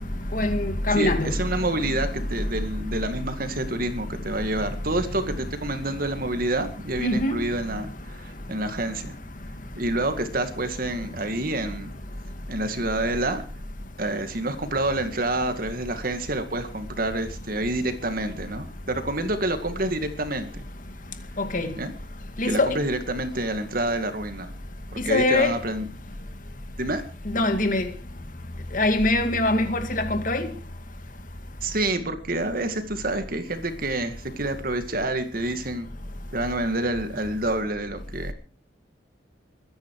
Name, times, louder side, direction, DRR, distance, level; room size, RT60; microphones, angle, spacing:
voice 1, 0.3-1.3 7.0-7.4 21.4-21.7 22.4-22.7 25.1-25.5 27.3-27.9 28.7-30.5, left 2 dB, 45° left, 2.2 m, -23 dB
voice 2, 0.9-9.2 9.8-11.9 12.5-13.4 14.0-20.6 21.8-21.9 22.4-24.5 24.9-25.9 26.8-27.0 31.6-35.9 36.3-38.3, right 2 dB, 50° right, 2.1 m, -28 dB
23.0 x 10.5 x 4.8 m
head